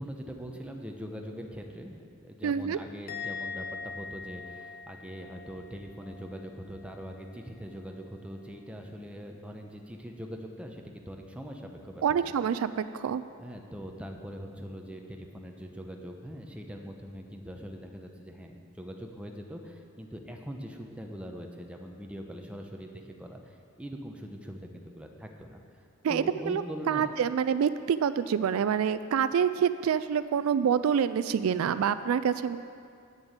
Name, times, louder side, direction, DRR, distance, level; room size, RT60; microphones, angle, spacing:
voice 1, 0.0-12.0 13.4-25.6 26.1-27.1, equal, 5° right, 2 dB, 0.8 m, -42 dB
voice 2, 2.4-2.8 12.0-13.2 26.0-32.6, right 7 dB, 75° right, 13 dB, 0.3 m, -27 dB
Musical instrument, 3.1-6.5 6.7-7.2, left 5 dB, 45° left, 1.0 m, -42 dB
8.8 x 6.9 x 8.1 m, 2.4 s
head